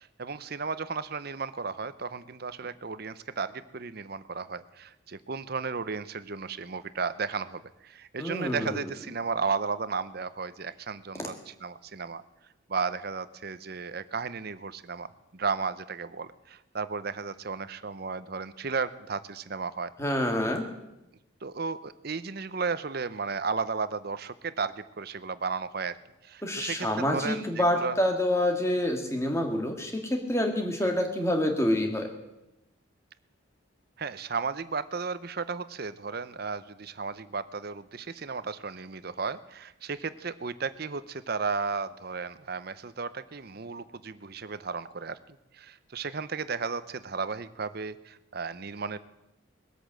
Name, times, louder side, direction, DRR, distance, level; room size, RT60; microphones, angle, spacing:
voice 1, 0.0-12.2 12.7-19.9 21.4-26.0 26.2-28.0 30.8-31.0 34.0-45.2 45.5-49.0, right 5 dB, 50° right, 14 dB, 0.7 m, -34 dB
voice 2, 8.2-8.8 20.0-20.7 26.4-32.1, left 1 dB, 15° left, 4 dB, 1.8 m, -27 dB
20.0 x 8.4 x 7.6 m, 0.92 s
head